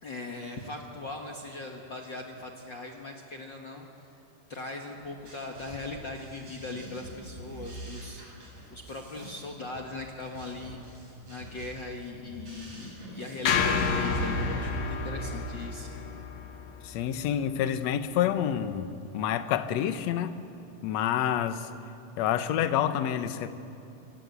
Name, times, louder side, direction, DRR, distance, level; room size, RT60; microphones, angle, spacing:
voice 1, 0.0-3.9 4.5-8.2 8.7-10.8 11.2-15.9, left 2 dB, 45° left, 1 dB, 1.8 m, -39 dB
sound 1, 5.0-14.6, right 1 dB, 50° right, 8.9 m, -45 dB
sound 2, 13.4-17.8, left 4 dB, 80° left, 3.4 m, -30 dB
voice 2, 16.8-20.4 20.8-21.7 22.2-23.5, left 10 dB, 65° left, 10 dB, 2.0 m, -28 dB
26.5 x 26.0 x 8.2 m, 2.7 s
omnidirectional pair, 3.9 m